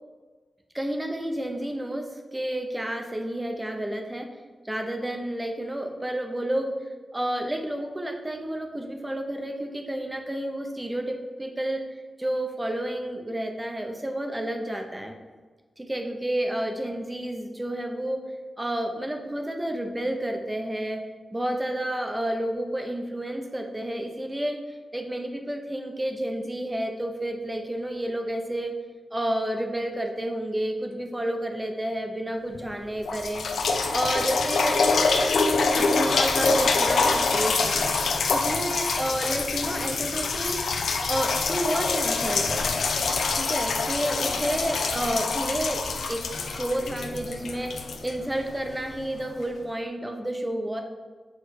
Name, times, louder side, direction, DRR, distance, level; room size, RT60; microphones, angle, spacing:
voice 1, 0.7-4.3 4.6-6.7 7.1-11.8 12.2-15.1 15.8-18.2 18.6-21.0 21.3-24.6 24.9-28.7 29.1-33.4 33.9-34.8 35.7-37.9 38.3-40.6 41.1-42.7 43.3-46.2 46.5-47.7 48.0-50.8, right 1 dB, 10° right, 4 dB, 0.7 m, -30 dB
sound 1, 32.6-32.7 33.1-48.8 49.4-49.5, left 4 dB, 85° left, 0.6 m, -25 dB
7.9 x 3.2 x 4.7 m, 1.4 s
wide cardioid pair, 160°, 0 cm